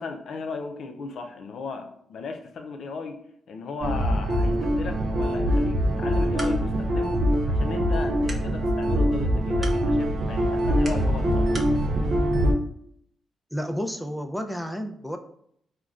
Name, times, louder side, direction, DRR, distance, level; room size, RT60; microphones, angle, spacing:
voice 1, 0.0-3.2 3.5-11.5, left 4 dB, 70° left, 6 dB, 0.4 m, -36 dB
sound 1, 3.8-12.5, equal, 65° right, 0.5 m, -23 dB
sound 2, 5.9-11.8, right 2 dB, 35° right, 0.7 m, -44 dB
voice 2, 13.5-15.2, equal, 5° left, 6 dB, 0.4 m, -31 dB
3.8 x 2.2 x 2.4 m, 0.68 s
supercardioid pair, 55°, 0 cm